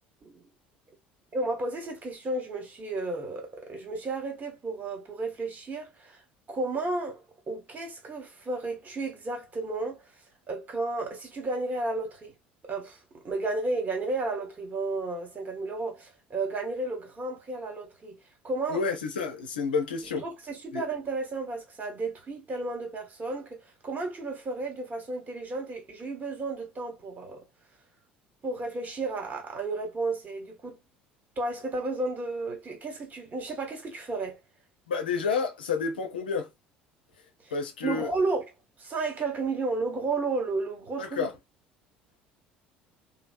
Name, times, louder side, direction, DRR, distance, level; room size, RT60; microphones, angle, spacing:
voice 1, 1.3-6.2 6.5-10.0 10.5-12.3 12.6-13.0 13.2-18.2 18.4-18.8 20.2-27.4 28.4-30.8 31.4-34.4 37.8-38.4 38.8-41.3, right 3 dB, 35° right, 1.3 m, -32 dB
voice 2, 18.7-20.3 20.7-20.8 34.9-36.5 37.5-38.1 41.0-41.3, left 5 dB, 75° left, 0.6 m, -29 dB
3.1 x 2.0 x 2.5 m
figure-of-eight pair, 60°, 5 cm